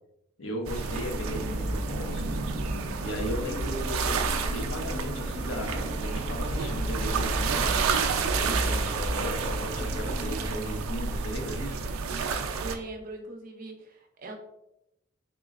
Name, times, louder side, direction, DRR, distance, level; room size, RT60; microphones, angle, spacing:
voice 1, 0.4-2.3 3.0-11.9, equal, 70° left, 2 dB, 0.7 m, -36 dB
sound 1, 0.7-12.8, right 5 dB, 85° right, 0.4 m, -30 dB
sound 2, 1.2-10.5, equal, 25° left, 0.4 m, -34 dB
voice 2, 12.5-14.3, right 2 dB, 45° right, 2 dB, 0.6 m, -40 dB
3.7 x 3.0 x 2.4 m, 0.83 s
head